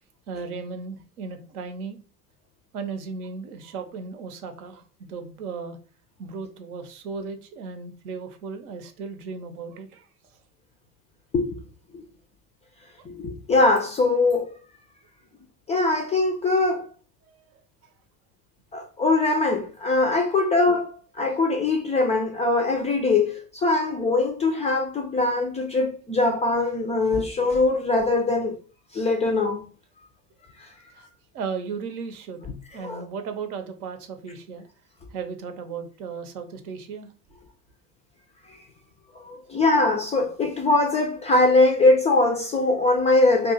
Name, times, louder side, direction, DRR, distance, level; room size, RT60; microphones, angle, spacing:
voice 1, 0.3-2.0 2.7-5.8 6.2-10.1 13.0-13.1 17.2-17.6 30.9-31.1 31.3-34.7 35.1-37.1, right 5 dB, 70° right, 0.7 m, -36 dB
voice 2, 13.1-14.5 15.7-16.9 18.7-28.6 28.9-29.7 30.6-30.7 32.8-33.0 39.1-43.5, left 2 dB, 15° left, 0.3 m, -22 dB
2.6 x 2.4 x 3.8 m
figure-of-eight pair, 70°, 46 cm